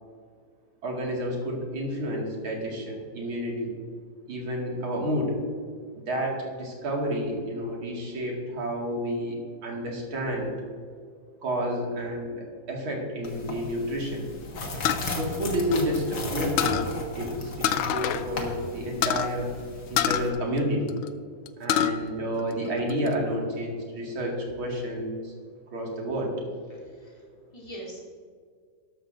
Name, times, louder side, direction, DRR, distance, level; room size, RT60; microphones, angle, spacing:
voice 1, 0.8-3.7 4.3-5.3 5.9-10.6 11.4-14.3 15.1-19.5 19.9-20.9 21.6-25.3 25.7-26.3, equal, 75° right, -1 dB, 2.8 m, -30 dB
sound 1, 13.2-20.3, left 2 dB, 50° left, 1.9 m, -35 dB
sound 2, 14.8-16.2 16.6-16.9 17.6-18.3 18.5-18.6 19.0-19.3 20.0-21.1 21.5-22.0 22.4-23.1, left 10 dB, 80° left, 1.4 m, -26 dB
voice 2, 26.7-27.2 27.5-28.1, right 1 dB, 15° left, -4 dB, 2.9 m, -43 dB
13.0 x 12.5 x 2.5 m, 2.1 s
omnidirectional pair, 2.3 m